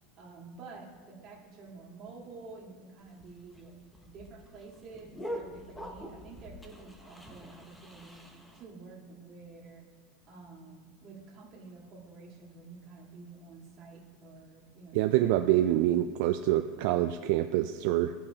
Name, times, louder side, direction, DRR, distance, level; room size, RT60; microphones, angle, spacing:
voice 1, 0.2-3.7 4.0-9.8 10.3-16.0, right 3 dB, 35° right, -3 dB, 1.9 m, -49 dB
sound 1, 3.0-8.6, equal, 5° left, 0.7 m, -44 dB
voice 2, 14.9-18.1, right 13 dB, 65° right, 7 dB, 0.3 m, -26 dB
15.5 x 5.3 x 2.9 m, 1.5 s
supercardioid pair, 155°, 0 cm